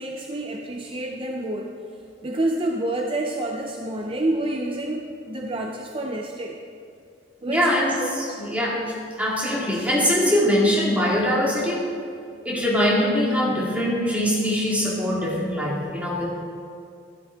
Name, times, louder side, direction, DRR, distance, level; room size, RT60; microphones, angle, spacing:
voice 1, 0.0-1.7 2.2-6.6 7.4-7.7 8.0-8.4, right 1 dB, 30° right, 1 dB, 0.5 m, -28 dB
voice 2, 7.5-8.8 9.2-11.9 12.5-16.3, equal, 10° right, -5 dB, 2.1 m, -22 dB
12.5 x 11.5 x 3.6 m, 2.3 s
head